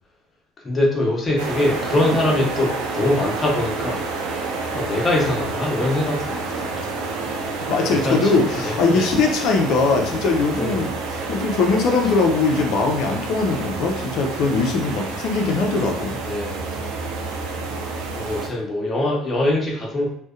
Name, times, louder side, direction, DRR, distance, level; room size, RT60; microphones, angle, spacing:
voice 1, 0.6-4.4 4.7-7.0 7.9-9.1 10.6-10.8 16.2-17.0 18.1-20.1, left 1 dB, 30° left, -2 dB, 0.8 m, -23 dB
sound 1, 1.4-18.5, right 3 dB, 80° right, 0.4 m, -29 dB
voice 2, 7.7-10.9 11.3-16.2, left 4 dB, 65° left, 3 dB, 0.4 m, -20 dB
2.6 x 2.1 x 2.3 m, 0.65 s
hypercardioid pair, 65°, 0 cm